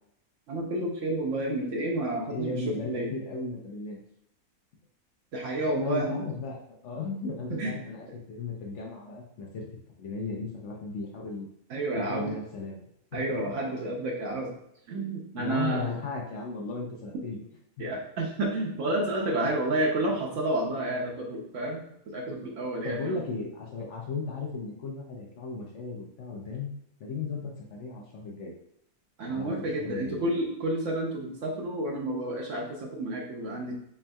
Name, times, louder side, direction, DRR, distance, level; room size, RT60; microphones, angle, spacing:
voice 1, 0.5-3.1 5.3-6.1 7.6-7.8 11.7-12.3 13.1-14.5 14.9-15.9 17.8-21.8 22.1-23.2 29.2-33.7, right 1 dB, 65° right, -1 dB, 0.8 m, -30 dB
voice 2, 2.3-4.0 5.8-6.6 6.8-9.7 10.0-11.5 11.9-12.8 13.1-13.4 15.4-17.4 17.8-17.9 22.8-26.7 27.0-28.5 29.3-30.4, left 3 dB, 60° left, -1 dB, 0.8 m, -36 dB
4.1 x 3.4 x 2.2 m, 0.75 s
omnidirectional pair, 1.6 m